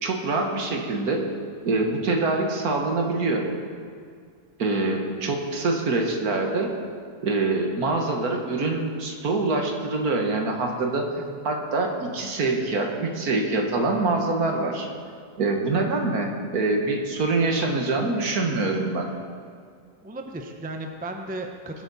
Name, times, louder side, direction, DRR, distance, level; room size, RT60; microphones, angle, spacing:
voice 1, 0.0-1.3 1.6-3.5 4.6-6.7 7.2-11.1 11.4-14.9 15.4-19.1, right 3 dB, 65° right, 2 dB, 1.9 m, -25 dB
voice 2, 20.0-21.8, right 2 dB, 10° right, 3 dB, 0.6 m, -35 dB
21.0 x 8.3 x 4.1 m, 2.2 s
omnidirectional pair, 1.7 m